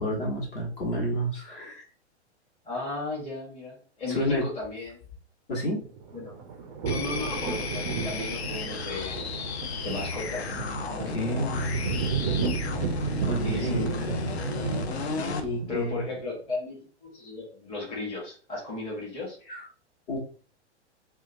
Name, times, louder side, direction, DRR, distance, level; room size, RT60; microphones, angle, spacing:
voice 1, 0.0-1.8 4.1-4.4 5.5-5.8 11.1-11.8 13.2-13.8 15.4-16.0 19.5-19.7 20.1-20.2, equal, 50° left, -2 dB, 1.2 m, -30 dB
voice 2, 2.6-5.0 6.1-6.4 6.8-9.3 9.8-10.6 13.4-14.2 15.7-19.4, left 3 dB, 15° left, -4 dB, 0.9 m, -35 dB
sound 1, 5.8-16.2, right 5 dB, 25° right, 0.3 m, -33 dB
sound 2, 6.9-15.5, left 5 dB, 65° left, 0.5 m, -34 dB
2.7 x 2.2 x 2.6 m, 0.40 s
figure-of-eight pair, 105°, 35 cm